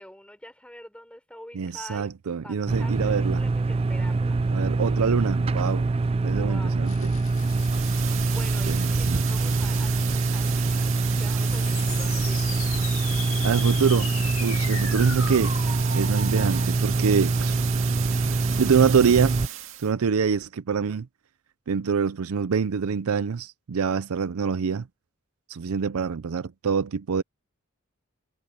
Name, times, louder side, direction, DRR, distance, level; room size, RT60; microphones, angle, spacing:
voice 1, 0.0-2.1 2.4-4.4 6.2-6.9 7.7-12.7, left 1 dB, 5° left, 5.8 m, -45 dB
voice 2, 1.5-3.4 4.5-5.9 6.2-7.1 8.7-9.2 13.4-14.1 14.4-15.5 15.9-17.6 18.5-19.4 19.8-21.1 21.7-24.9 25.5-27.2, right 6 dB, 90° right, 0.5 m, -25 dB
sound 1, 2.7-19.5, right 3 dB, 25° right, 0.3 m, -24 dB
sound 2, 6.9-16.7, left 7 dB, 75° left, 2.4 m, -39 dB
sound 3, 7.2-19.9, right 12 dB, 65° right, 2.2 m, -35 dB
head